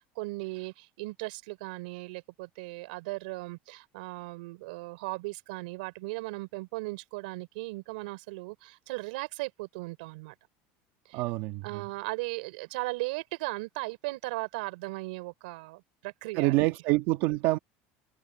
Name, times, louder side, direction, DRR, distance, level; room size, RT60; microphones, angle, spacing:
voice 1, 0.0-10.3 11.1-11.2 11.6-16.6, right 23 dB, 85° right, 3.8 m, -37 dB
voice 2, 11.1-11.8 16.3-17.6, right 19 dB, 65° right, 1.7 m, -26 dB
cardioid pair, 145°, 5 cm